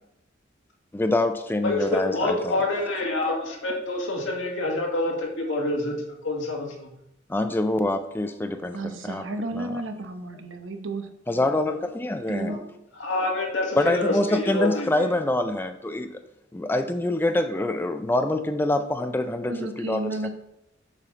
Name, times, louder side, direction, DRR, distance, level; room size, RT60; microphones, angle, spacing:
voice 1, 0.9-2.6 7.3-8.8 9.0-9.2 9.5-9.8 11.3-12.5 13.8-16.1 16.5-20.3, left 1 dB, 10° left, 7 dB, 0.4 m, -25 dB
voice 2, 1.6-5.9 6.2-6.9 12.5-12.6 13.0-15.1, left 2 dB, 80° left, -1 dB, 2.0 m, -27 dB
voice 3, 8.7-11.1 12.3-12.6 19.5-20.3, right 2 dB, 80° right, 7 dB, 0.9 m, -32 dB
7.4 x 5.8 x 3.9 m, 0.81 s
head